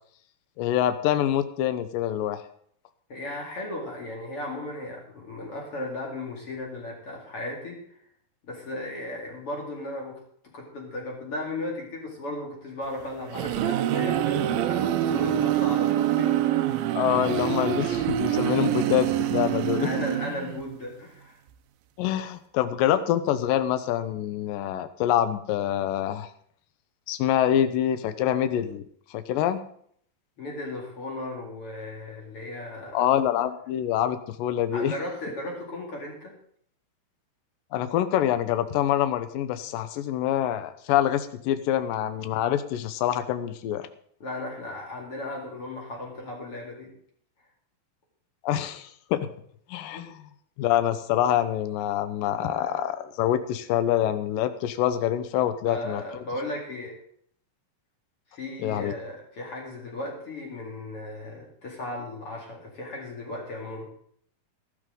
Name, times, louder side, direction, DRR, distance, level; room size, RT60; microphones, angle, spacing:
voice 1, 0.6-2.4 17.0-19.9 22.0-26.3 27.1-28.8 29.1-29.6 32.9-34.9 37.7-43.9 48.4-49.3 49.7-50.1 50.6-56.0 58.6-58.9, left 11 dB, 75° left, 10 dB, 2.3 m, -25 dB
voice 2, 3.1-8.0 8.4-10.2 10.5-16.9 19.8-21.4 30.4-33.1 34.7-36.3 44.2-46.9 49.9-50.1 55.4-57.0 58.3-63.9, left 2 dB, 40° left, -1 dB, 2.7 m, -36 dB
sound 1, 13.0-20.7, right 12 dB, 80° right, 2.4 m, -25 dB
13.5 x 12.5 x 3.8 m, 0.63 s
omnidirectional pair, 4.4 m